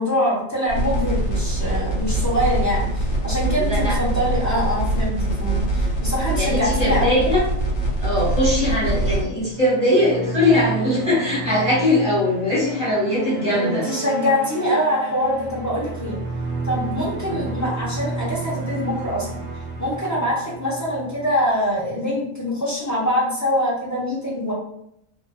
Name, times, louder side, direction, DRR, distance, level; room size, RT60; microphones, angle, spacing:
voice 1, 0.0-7.2 13.5-16.2 16.6-19.4 19.8-24.5, equal, 20° left, -7 dB, 0.5 m, -24 dB
sound 1, 0.7-9.2, right 1 dB, 60° left, 1.2 m, -23 dB
voice 2, 3.6-4.0 6.3-7.4 8.0-13.9 17.2-17.4, left 1 dB, 5° right, -8 dB, 1.2 m, -21 dB
sound 2, 9.3-21.7, right 3 dB, 65° right, 0.7 m, -32 dB
2.5 x 2.4 x 2.3 m, 0.75 s
omnidirectional pair, 1.4 m